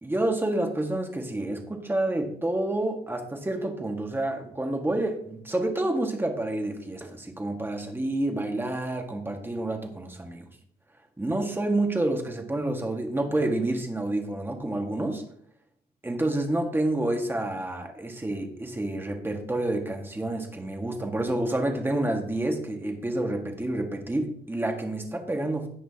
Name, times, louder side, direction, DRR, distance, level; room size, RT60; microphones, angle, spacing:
voice 1, 0.0-10.5 11.2-15.2 16.0-25.7, right 1 dB, 15° right, 3 dB, 1.7 m, -28 dB
17.0 x 6.0 x 2.9 m, 0.66 s
cardioid pair, 120°, 17 cm